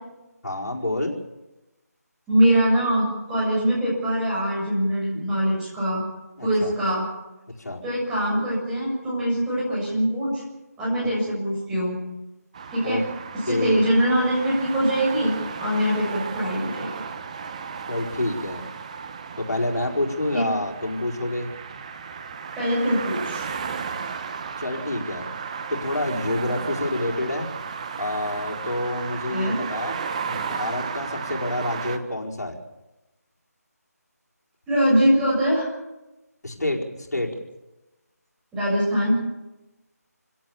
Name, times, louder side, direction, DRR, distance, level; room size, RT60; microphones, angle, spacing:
voice 1, 0.4-1.1 6.4-6.7 7.6-7.8 12.8-13.0 13.5-13.8 17.9-18.6 19.4-21.5 24.6-25.3 25.7-27.5 28.0-32.6 36.4-37.3, left 1 dB, 80° left, 0 dB, 4.5 m, -28 dB
voice 2, 2.3-6.0 6.4-7.1 7.8-10.4 10.8-12.0 12.7-13.1 13.4-15.3 15.6-16.9 22.6-23.5 29.3-29.6 34.7-35.7 38.5-39.2, equal, 5° right, -7 dB, 7.2 m, -22 dB
sound 1, 12.5-32.0, right 6 dB, 25° right, 1.2 m, -34 dB
27.0 x 17.0 x 7.1 m, 1.0 s
figure-of-eight pair, 170°, 9 cm